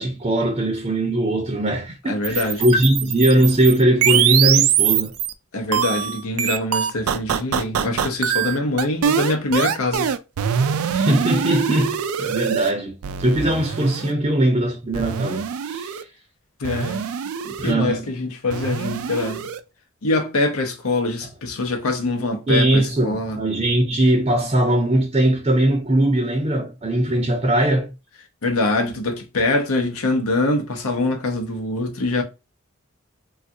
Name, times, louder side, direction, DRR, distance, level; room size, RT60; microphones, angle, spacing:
voice 1, 0.0-5.1 10.9-16.0 17.6-18.1 22.5-27.9, right 1 dB, 30° right, 0.5 m, -20 dB
voice 2, 2.0-2.6 5.5-10.1 16.6-17.0 17.4-19.5 20.0-23.4 28.4-32.2, left 2 dB, 85° left, 0.7 m, -24 dB
sound 1, 2.2-5.3 5.7-12.7 13.0-14.1 14.9-16.0 16.6-17.7 18.5-19.6, right 8 dB, 85° right, 0.4 m, -23 dB
3.5 x 2.4 x 2.6 m
head